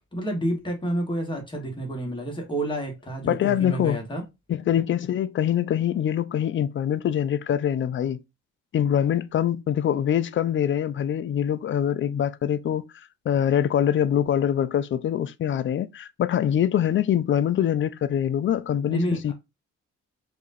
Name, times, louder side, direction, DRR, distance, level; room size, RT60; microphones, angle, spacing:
voice 1, 0.1-4.2 18.9-19.2, right 1 dB, 15° left, 1.5 m, -29 dB
voice 2, 3.2-4.0 4.5-8.2 8.7-12.9 13.3-19.3, left 10 dB, 40° left, 0.4 m, -24 dB
4.6 x 2.5 x 2.6 m
cardioid pair, 90°, 30 cm